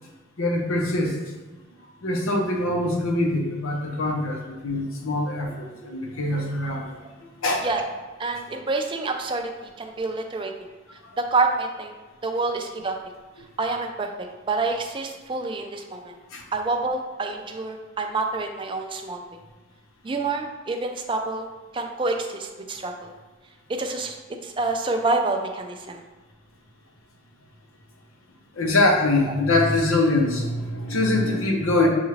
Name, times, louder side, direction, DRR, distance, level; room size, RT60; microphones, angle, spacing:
voice 1, 0.4-1.3 2.0-7.7 11.0-11.1 16.3-16.4 28.6-31.9, left 2 dB, 90° left, 1 dB, 0.8 m, -24 dB
voice 2, 8.2-10.5 11.2-11.9 12.2-13.0 13.6-14.1 14.5-16.1 16.5-19.2 20.0-21.5 21.7-23.1 23.7-24.2 24.4-26.0, right 3 dB, 25° right, 3 dB, 0.4 m, -27 dB
7.0 x 2.4 x 3.2 m, 1.3 s
head